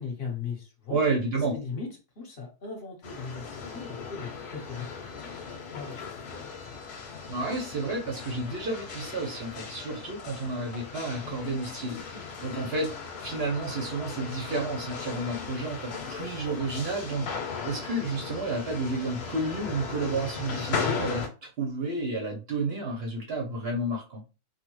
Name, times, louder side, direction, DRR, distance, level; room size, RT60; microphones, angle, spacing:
voice 1, 0.0-1.0 1.5-1.9 2.2-5.3 5.7-6.5, left 5 dB, 40° left, 0 dB, 1.1 m, -38 dB
voice 2, 0.9-1.5 7.3-24.2, right 2 dB, 55° right, 0 dB, 0.7 m, -31 dB
sound 1, 3.0-21.3, left 5 dB, 80° left, 1.3 m, -37 dB
3.2 x 2.1 x 3.0 m, 0.31 s
omnidirectional pair, 1.6 m